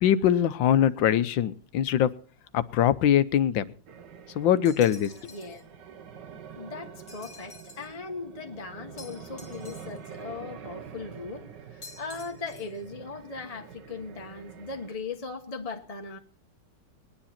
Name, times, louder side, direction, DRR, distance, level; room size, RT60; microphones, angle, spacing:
voice 1, 0.0-2.1 2.5-3.7 4.3-5.1, left 10 dB, 85° left, 1.5 m, -22 dB
sound 1, 3.9-14.9, right 7 dB, 70° right, 1.8 m, -46 dB
sound 2, 4.7-5.6 7.1-8.0 9.0-10.2 11.8-12.8, left 3 dB, 45° left, 1.9 m, -49 dB
voice 2, 5.3-5.6 6.5-16.2, left 4 dB, 20° left, 1.2 m, -39 dB
20.5 x 10.0 x 4.3 m
omnidirectional pair, 2.0 m